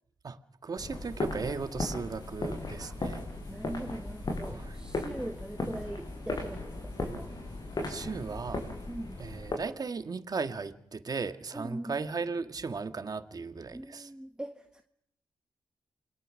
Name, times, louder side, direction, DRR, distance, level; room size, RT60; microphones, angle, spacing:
voice 1, 0.2-3.2 4.5-4.8 7.9-8.6 9.2-14.1, right 4 dB, 50° right, 9 dB, 1.8 m, -36 dB
sound 1, 0.8-9.6, left 2 dB, 50° left, 7.0 m, -37 dB
voice 2, 3.5-7.3 8.9-9.2 11.5-12.0 13.7-14.8, right 1 dB, 10° right, 6 dB, 1.5 m, -41 dB
28.5 x 22.0 x 6.5 m, 0.75 s
cardioid pair, 75°, 9 cm